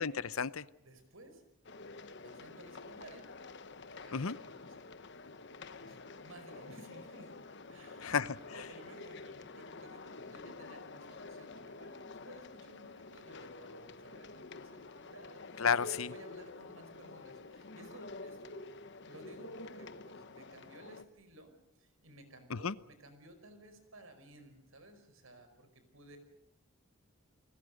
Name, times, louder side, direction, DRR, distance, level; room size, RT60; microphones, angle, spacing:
voice 1, 0.0-0.6 4.1-4.4 8.0-8.6 15.6-16.1 22.5-22.7, left 6 dB, 90° left, 17 dB, 0.8 m, -32 dB
voice 2, 0.8-1.4 2.2-3.3 4.0-4.7 5.8-7.3 7.7-8.2 8.5-15.4 15.8-18.6 19.0-21.5 21.8-26.2, right 1 dB, 80° right, 9 dB, 5.0 m, -56 dB
sound 1, 1.6-21.0, left 3 dB, 55° left, 1.1 m, -49 dB
30.0 x 20.5 x 6.5 m, 0.85 s
head